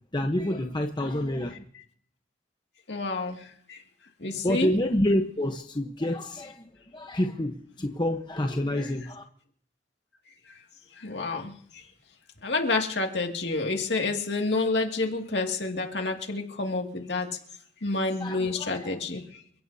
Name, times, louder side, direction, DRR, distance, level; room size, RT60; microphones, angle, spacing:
voice 1, 0.1-1.6 4.4-6.6 6.9-9.2 18.2-19.0, left 1 dB, 25° left, 4 dB, 1.0 m, -28 dB
voice 2, 2.9-3.8 4.2-4.7 8.8-8.9 10.5-10.6 10.9-11.9 12.4-17.3 17.8-19.4, left 3 dB, 70° left, 2 dB, 2.3 m, -29 dB
28.5 x 16.5 x 2.8 m, 0.62 s
head